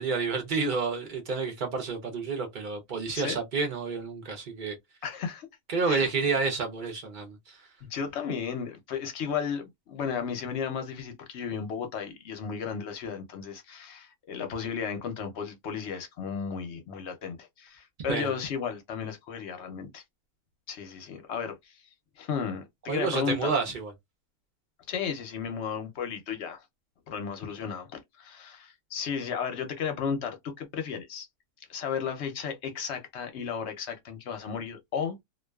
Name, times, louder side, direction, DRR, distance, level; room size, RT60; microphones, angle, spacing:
voice 1, 0.0-4.8 5.7-7.6 18.1-18.3 22.9-23.9, right 4 dB, 60° right, 0.5 m, -29 dB
voice 2, 5.0-5.5 5.8-6.1 7.8-20.0 20.7-21.8 22.2-23.5 24.9-26.7 27.1-31.3 31.7-35.2, left 6 dB, 60° left, 0.7 m, -34 dB
2.4 x 2.3 x 2.2 m
omnidirectional pair, 1.6 m